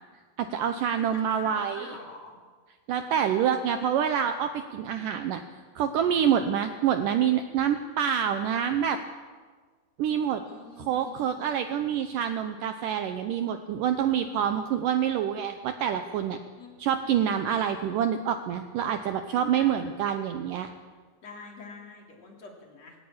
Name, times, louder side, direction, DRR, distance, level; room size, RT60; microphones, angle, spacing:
voice 1, 0.4-2.0 2.9-5.4 5.8-9.0 10.0-10.4 10.8-16.4 16.8-20.7, right 9 dB, 75° right, 8 dB, 2.0 m, -27 dB
voice 2, 1.0-2.4 3.0-3.6 10.5-11.8 16.6-16.8 19.6-19.9 21.2-23.0, left 3 dB, 45° left, 1 dB, 3.9 m, -46 dB
20.0 x 17.5 x 8.7 m, 1.5 s
omnidirectional pair, 4.6 m